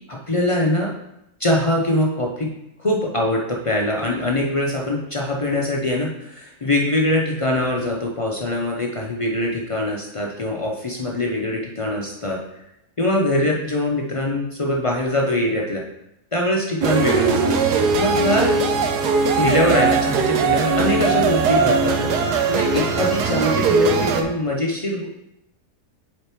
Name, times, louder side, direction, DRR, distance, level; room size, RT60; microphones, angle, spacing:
voice 1, 0.1-0.9 1.4-2.5 2.8-12.4 13.0-15.8 16.3-18.6 19.3-22.1 22.5-25.1, left 1 dB, 55° left, -2 dB, 0.3 m, -23 dB
sound 1, 16.8-24.2, right 4 dB, 85° right, 1.2 m, -19 dB
6.6 x 4.0 x 4.5 m, 0.86 s
omnidirectional pair, 1.7 m